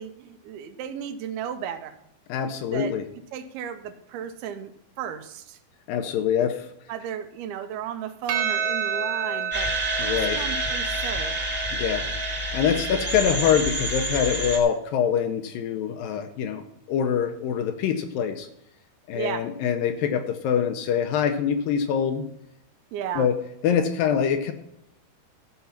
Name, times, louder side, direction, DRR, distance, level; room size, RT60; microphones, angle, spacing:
voice 1, 0.0-2.0 2.7-2.9 3.3-4.7 5.0-5.6 6.9-9.7 10.0-11.5 12.9-13.1 19.1-19.5 22.9-23.3, right 9 dB, 85° right, 9 dB, 2.7 m, -34 dB
voice 2, 2.3-3.0 5.9-6.7 10.0-10.4 11.7-12.1 12.5-18.5 19.1-22.3 23.2-24.5, left 8 dB, 75° left, 8 dB, 2.3 m, -24 dB
Percussion, 8.3-12.9, right 6 dB, 65° right, 2.8 m, -30 dB
sound 1, 9.5-14.6, right 1 dB, 5° right, 1.1 m, -28 dB
14.0 x 5.6 x 5.8 m, 0.79 s
omnidirectional pair, 4.5 m